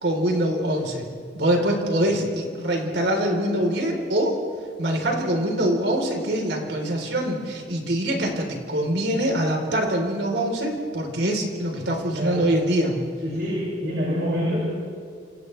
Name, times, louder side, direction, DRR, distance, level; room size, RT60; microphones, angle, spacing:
voice 1, 0.0-1.0 1.3-4.4 4.8-12.9, right 1 dB, 90° right, 1 dB, 4.1 m, -24 dB
voice 2, 2.1-2.4 12.1-12.6 13.2-14.6, equal, 60° right, -5 dB, 6.1 m, -27 dB
29.0 x 27.5 x 3.4 m, 2.1 s
head